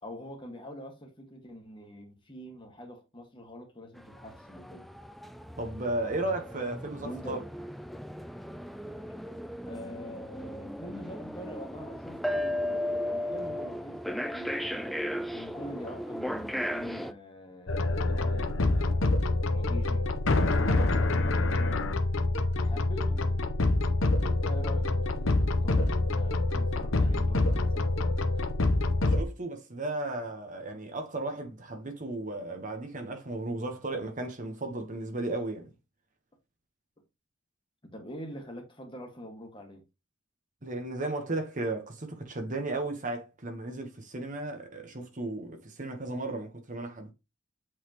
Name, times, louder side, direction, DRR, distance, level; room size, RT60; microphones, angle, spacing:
voice 1, 0.0-4.9 7.0-7.5 9.7-15.0 15.3-19.1 19.5-20.1 20.5-22.0 22.6-23.5 24.2-28.2 37.9-39.8, equal, 25° left, 1.8 m, -45 dB
sound 1, 4.0-17.1, equal, ahead, 0.3 m, -36 dB
voice 2, 5.6-7.4 29.1-35.7 40.6-47.1, right 2 dB, 40° right, 1.2 m, -35 dB
sound 2, 17.7-29.2, left 2 dB, 75° left, 0.9 m, -26 dB
7.9 x 4.1 x 3.0 m
head